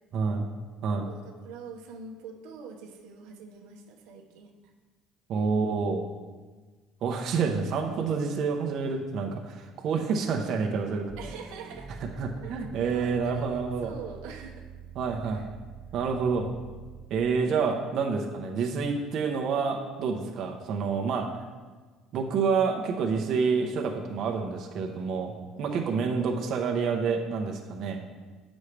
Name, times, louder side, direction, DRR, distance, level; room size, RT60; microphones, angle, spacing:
voice 1, 0.1-0.5 0.8-1.1 5.3-6.1 7.0-11.0 12.2-13.9 15.0-15.4 15.9-16.5 17.1-21.3 22.1-25.3 25.6-28.0, right 5 dB, 55° right, 2 dB, 0.9 m, -28 dB
voice 2, 1.1-4.5 11.2-11.9 12.4-14.7 15.2-15.5 20.2-20.5 25.5-26.3 27.8-28.0, right 5 dB, 90° right, 1 dB, 0.9 m, -45 dB
sound 1, 11.1-17.3, right 7 dB, 20° right, 0.4 m, -46 dB
8.2 x 6.3 x 3.3 m, 1.4 s
cardioid pair, 120°, 0 cm